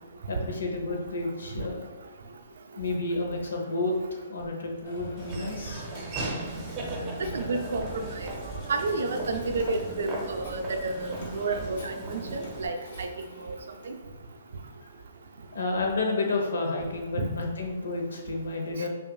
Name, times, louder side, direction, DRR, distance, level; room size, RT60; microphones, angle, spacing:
voice 1, 0.3-1.9 2.8-5.8 14.8-14.9 15.5-18.9, left 2 dB, 90° left, 1 dB, 0.8 m, -30 dB
Telephone, 4.8-13.9, equal, 60° left, 1.0 m, -47 dB
Laughter / Walk footsteps, 5.2-12.7, right 2 dB, 20° right, 0.7 m, -37 dB
voice 2, 7.2-8.3 8.7-13.1 13.4-13.6 13.9-14.0 17.1-17.3, right 3 dB, 70° right, 5 dB, 0.5 m, -31 dB
5.3 x 2.5 x 2.3 m, 1.3 s
hypercardioid pair, 160°, 0 cm